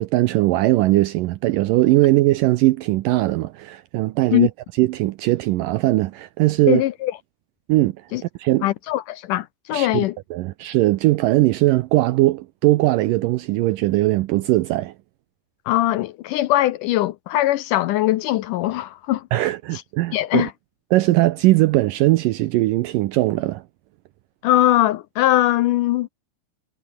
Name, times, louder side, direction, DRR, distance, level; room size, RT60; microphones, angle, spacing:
voice 1, 0.0-4.5 4.8-6.8 7.7-8.0 8.4-8.7 9.7-10.0 10.3-14.9 19.3-20.5 20.9-23.6, right 17 dB, 80° right, 2.0 m, -19 dB
voice 2, 6.7-7.1 8.1-8.2 8.6-10.2 15.7-19.5 19.7-19.8 20.1-20.5 24.4-26.1, left 15 dB, 80° left, 1.9 m, -21 dB
omnidirectional pair, 4.4 m